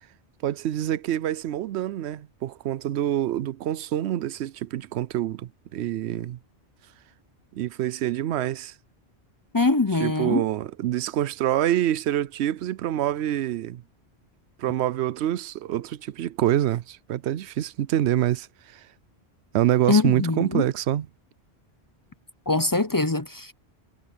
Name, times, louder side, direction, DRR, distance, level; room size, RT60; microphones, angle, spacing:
voice 1, 0.4-6.4 7.5-8.7 10.0-13.8 14.6-18.8 19.5-21.1, right 12 dB, 80° right, 0.8 m, -26 dB
voice 2, 9.5-10.4 19.9-20.7 22.5-23.5, left 3 dB, 25° left, 0.5 m, -23 dB
omnidirectional pair, 1.1 m